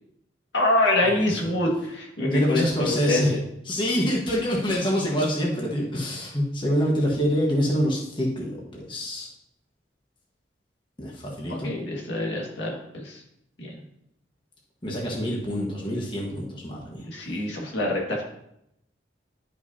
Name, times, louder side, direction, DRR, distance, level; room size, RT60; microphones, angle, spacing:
voice 1, 0.5-3.4 11.5-13.2 13.6-13.8 17.0-18.2, left 1 dB, 75° left, -1 dB, 1.9 m, -26 dB
voice 2, 1.2-1.5 2.2-3.3 3.7-9.3 11.0-11.7 14.8-17.4, equal, 25° left, -2 dB, 1.4 m, -26 dB
11.5 x 5.8 x 2.8 m, 0.77 s
head